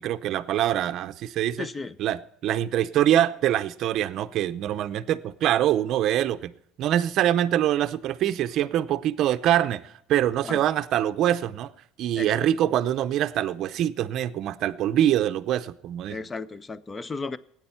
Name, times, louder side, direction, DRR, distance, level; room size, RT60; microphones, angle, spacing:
voice 1, 0.0-1.7 2.0-6.5 6.8-9.8 10.1-11.7 12.0-16.2, right 11 dB, 45° right, 0.6 m, -24 dB
voice 2, 1.6-2.0 10.4-10.6 12.2-12.5 16.1-17.4, left 4 dB, 15° left, 0.5 m, -34 dB
17.5 x 9.5 x 5.6 m
cardioid pair, 155°, 0 cm